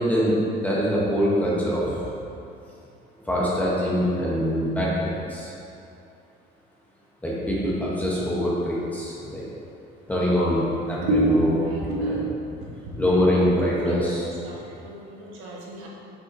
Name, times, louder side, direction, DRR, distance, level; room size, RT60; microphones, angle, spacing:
voice 1, 0.0-1.9 3.2-5.5 7.2-9.4 10.1-11.5 12.0-12.2 12.5-12.6 13.0-14.6, equal, 10° left, -6 dB, 0.8 m, -24 dB
voice 2, 11.0-15.9, right 1 dB, 80° right, -3 dB, 1.2 m, -29 dB
7.1 x 5.1 x 2.6 m, 2.7 s
cardioid pair, 180°, 20 cm